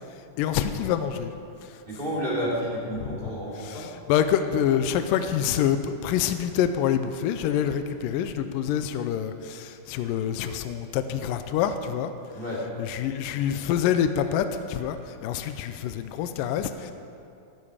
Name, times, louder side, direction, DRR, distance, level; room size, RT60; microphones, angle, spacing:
voice 1, 0.1-1.3 1.6-1.8 3.0-12.1 12.8-16.9, left 9 dB, 80° left, 9 dB, 2.1 m, -27 dB
voice 2, 1.9-3.9 12.3-12.7, equal, 15° right, -4 dB, 2.3 m, -30 dB
14.5 x 13.5 x 5.0 m, 2.6 s
omnidirectional pair, 4.2 m